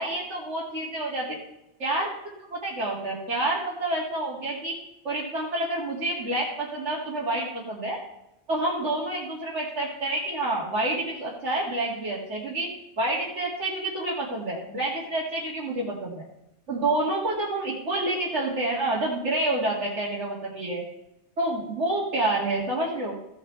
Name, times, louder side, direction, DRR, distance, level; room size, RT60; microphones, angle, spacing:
voice 1, 0.0-1.4 1.8-2.1 2.5-4.8 5.0-8.0 8.5-12.7 13.0-16.2 16.7-20.8 21.4-23.1, right 2 dB, 90° right, -8 dB, 2.7 m, -28 dB
16.5 x 8.1 x 3.4 m, 0.88 s
omnidirectional pair, 1.2 m